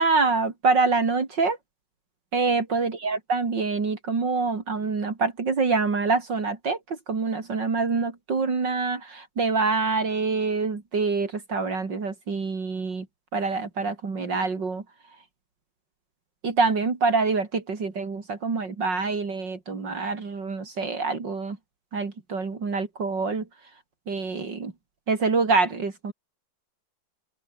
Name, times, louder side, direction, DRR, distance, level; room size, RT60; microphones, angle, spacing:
voice 1, 0.0-1.6 2.3-6.8 7.1-13.1 13.3-14.8 16.4-21.6 21.9-23.4 24.1-24.7 25.1-26.1, right 4 dB, 65° right, 3.7 m, -25 dB
open air
omnidirectional pair, 2.1 m